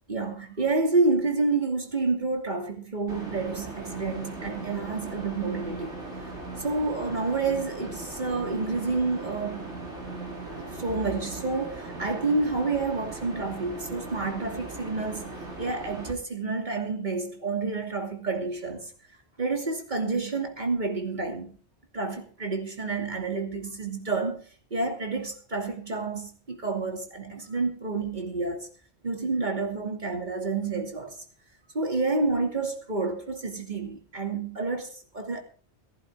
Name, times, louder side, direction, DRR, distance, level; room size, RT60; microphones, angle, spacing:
voice 1, 0.1-5.9 6.6-9.7 10.5-15.3 15.6-18.9 19.4-21.6 21.9-24.4 24.7-28.7 29.0-31.2 31.7-35.4, right 3 dB, 45° right, 2.9 m, -29 dB
sound 1, 3.1-16.1, right 2 dB, 85° right, 4.4 m, -39 dB
16.0 x 14.5 x 3.7 m
omnidirectional pair, 1.1 m